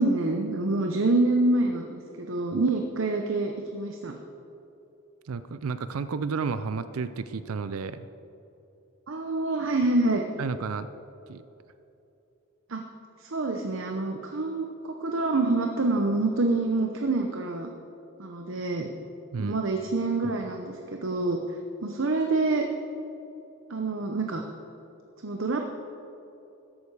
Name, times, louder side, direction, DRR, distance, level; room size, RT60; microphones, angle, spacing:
voice 1, 0.0-4.1 9.1-10.2 12.7-12.8 13.2-17.7 18.2-18.9 19.4-21.4 21.8-22.7 23.7-24.4 25.2-25.6, right 2 dB, 65° right, 4 dB, 0.8 m, -26 dB
voice 2, 5.3-8.1 10.4-10.9 11.3-11.4 19.3-19.6, right 5 dB, 85° right, 12 dB, 0.5 m, -31 dB
14.0 x 11.5 x 4.8 m, 2.9 s
head